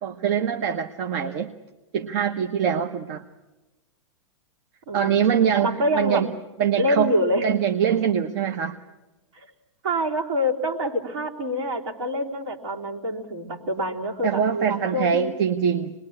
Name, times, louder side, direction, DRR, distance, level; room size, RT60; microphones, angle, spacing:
voice 1, 0.0-1.5 1.9-3.2 4.9-6.3 6.6-7.1 7.4-8.8 14.2-15.9, right 8 dB, 45° right, 7 dB, 1.1 m, -23 dB
voice 2, 4.9-6.3 6.8-7.4 9.3-9.5 9.8-15.3, equal, 65° right, 1 dB, 3.5 m, -26 dB
26.0 x 21.0 x 8.6 m, 1.1 s
hypercardioid pair, 110°, 16 cm